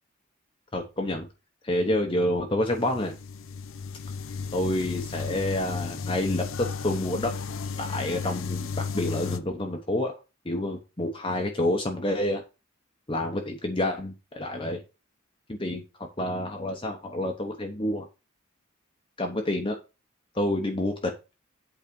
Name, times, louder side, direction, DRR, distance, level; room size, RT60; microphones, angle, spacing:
voice 1, 0.7-1.3 1.6-3.2 4.5-7.3 7.8-10.2 10.4-12.4 13.1-14.8 15.5-18.1 19.2-19.8 20.3-21.1, left 1 dB, 25° left, 3 dB, 0.9 m, -28 dB
sound 1, 2.7-9.4, left 5 dB, 80° left, 0.6 m, -33 dB
8.5 x 4.1 x 5.3 m, 0.29 s
head